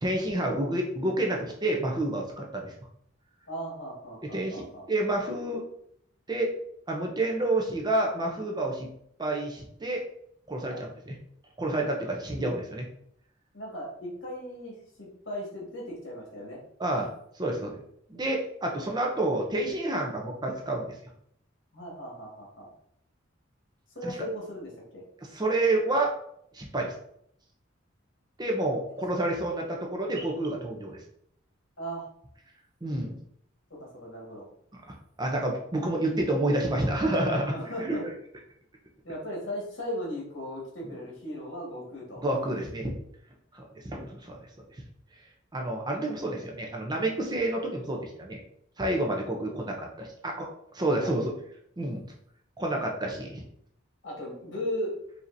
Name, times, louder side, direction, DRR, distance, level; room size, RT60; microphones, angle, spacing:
voice 1, 0.0-2.7 4.3-5.6 6.3-6.5 6.9-8.9 9.2-10.0 10.5-11.2 11.6-12.8 16.8-17.1 17.4-17.7 18.1-20.9 24.0-24.2 25.3-26.1 26.5-26.9 28.4-31.0 32.8-33.2 34.9-37.5 37.8-38.1 42.2-42.9 43.5-44.4 45.5-48.4 48.8-50.5 50.7-51.3 51.8-52.0 52.6-53.4, right 1 dB, 20° right, 1 dB, 0.6 m, -29 dB
voice 2, 3.5-4.8 10.7-10.8 12.4-12.5 13.5-16.6 21.7-22.7 23.9-25.0 31.8-32.1 33.7-34.5 37.5-38.0 39.0-42.2 51.0-51.1 54.0-54.9, equal, 65° left, -3 dB, 1.6 m, -37 dB
5.0 x 2.8 x 2.6 m, 0.70 s
head